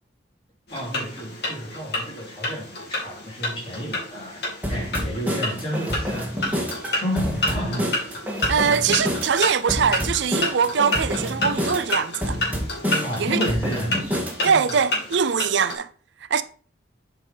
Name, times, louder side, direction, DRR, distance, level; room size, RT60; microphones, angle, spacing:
sound 1, 0.7-15.8, left 2 dB, 65° left, 2.6 m, -30 dB
voice 1, 0.7-4.4 4.7-6.6 6.9-8.0 13.0-14.1 14.4-14.7, equal, 30° left, 2.9 m, -31 dB
sound 2, 4.6-14.6, equal, 10° right, 1.7 m, -28 dB
voice 2, 8.5-12.4 13.2-13.5 14.4-15.9 16.3-16.4, right 6 dB, 80° right, 0.5 m, -22 dB
7.7 x 4.9 x 3.9 m
head